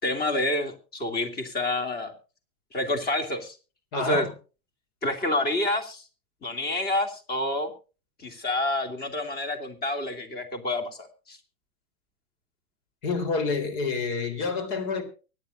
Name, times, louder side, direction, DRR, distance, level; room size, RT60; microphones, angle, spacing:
voice 1, 0.0-2.1 2.7-3.6 4.0-4.3 5.0-6.0 6.4-7.7 8.2-11.4, left 1 dB, 20° left, 2.9 m, -28 dB
voice 2, 3.9-4.3 13.0-15.0, left 4 dB, 50° left, 3.9 m, -28 dB
23.5 x 10.0 x 2.6 m
hypercardioid pair, 125°, 43 cm